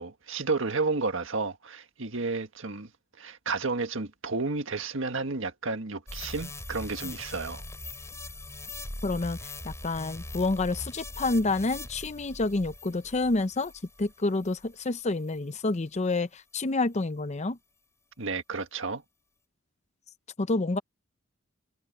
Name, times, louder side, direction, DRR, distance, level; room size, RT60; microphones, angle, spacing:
voice 1, 0.0-2.9 3.2-7.6 18.2-19.0, right 3 dB, 70° right, 1.7 m, -31 dB
sound 1, 6.1-14.7 15.2-15.4, left 2 dB, 15° left, 5.2 m, -41 dB
voice 2, 9.0-13.7 14.0-17.6 20.4-20.8, left 2 dB, 35° left, 0.7 m, -28 dB
head